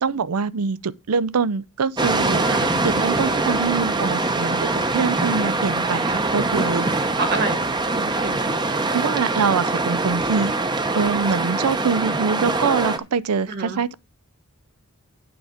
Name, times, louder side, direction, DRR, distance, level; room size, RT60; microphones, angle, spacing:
voice 1, 0.0-2.5 2.8-6.9 8.9-10.5 10.9-13.9, right 5 dB, 80° right, 0.5 m, -24 dB
sound 1, 2.0-13.0, right 2 dB, 20° right, 0.7 m, -23 dB
voice 2, 2.4-2.8 7.2-8.5 13.5-13.8, right 3 dB, 45° right, 1.7 m, -28 dB
8.9 x 4.9 x 6.5 m
head